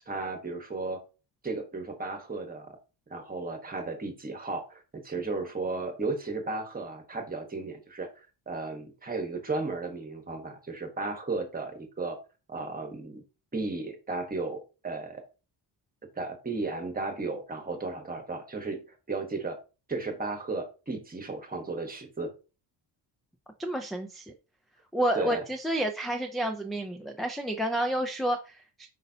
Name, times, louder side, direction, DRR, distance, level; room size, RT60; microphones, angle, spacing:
voice 1, 0.1-1.0 1.4-2.8 3.1-12.2 12.5-13.2 13.5-15.2 16.2-19.6 19.9-22.3 25.1-25.4, right 3 dB, 20° right, 5 dB, 1.2 m, -34 dB
voice 2, 23.6-24.3 24.9-28.9, right 1 dB, ahead, 5 dB, 0.4 m, -30 dB
8.2 x 5.4 x 2.7 m, 0.32 s
wide cardioid pair, 170°, 45 cm